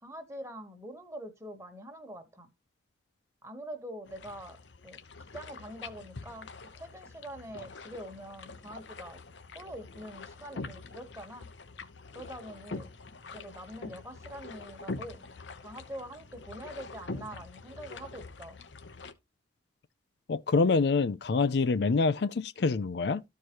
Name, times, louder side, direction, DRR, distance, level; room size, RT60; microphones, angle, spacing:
voice 1, 0.0-2.5 3.4-4.6 4.8-5.0 5.3-6.5 6.7-9.2 9.5-11.5 12.1-12.9 13.3-15.2 15.6-18.6, right 1 dB, 15° right, 1.4 m, -44 dB
sound 1, 4.1-19.1, left 3 dB, 80° left, 0.9 m, -45 dB
voice 2, 20.3-23.2, left 4 dB, 65° left, 0.4 m, -26 dB
13.5 x 4.7 x 3.0 m
head